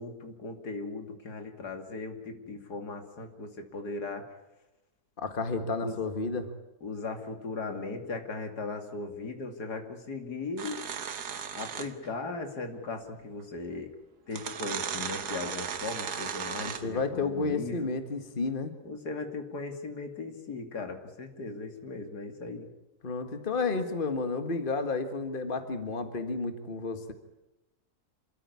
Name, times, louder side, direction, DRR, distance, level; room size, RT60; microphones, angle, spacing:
voice 1, 0.0-4.3 5.8-6.0 6.8-10.8 11.5-13.9 14.3-18.0 18.8-22.7, left 3 dB, 85° left, 5 dB, 3.1 m, -38 dB
voice 2, 5.2-6.5 16.6-18.7 23.0-27.1, left 3 dB, 35° left, 8 dB, 1.8 m, -31 dB
sound 1, 10.6-12.1 13.4-13.5 14.3-17.0, right 7 dB, 85° right, 1.8 m, -36 dB
27.0 x 14.0 x 9.7 m, 1.0 s
omnidirectional pair, 1.7 m